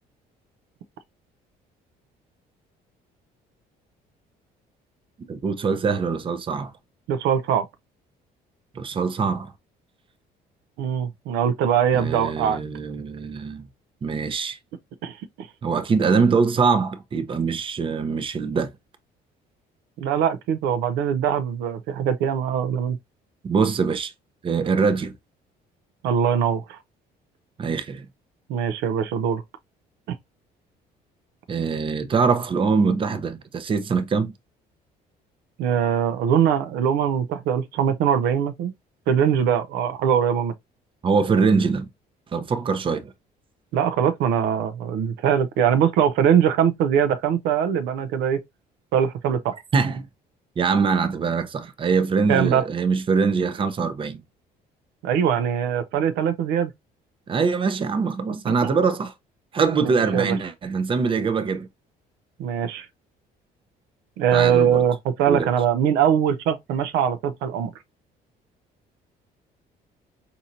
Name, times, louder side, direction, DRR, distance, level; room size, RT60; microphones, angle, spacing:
voice 1, 5.3-6.7 8.7-9.5 11.9-13.6 14.0-14.6 15.6-18.7 23.4-24.1 24.4-25.1 27.6-28.1 31.5-34.3 41.0-41.9 42.3-43.1 49.7-50.1 50.6-54.2 57.3-59.1 59.5-61.7 64.3-64.8 65.3-65.5, right 5 dB, 30° right, 0.6 m, -23 dB
voice 2, 7.1-7.7 10.8-12.6 15.0-15.5 20.0-23.0 26.0-26.8 28.5-29.4 35.6-38.7 39.1-40.5 43.7-48.4 48.9-49.6 52.3-52.6 55.0-56.7 59.8-60.4 62.4-62.9 64.2-67.7, right 8 dB, 85° right, 0.5 m, -22 dB
4.2 x 2.6 x 2.6 m
cardioid pair, 110°, 17 cm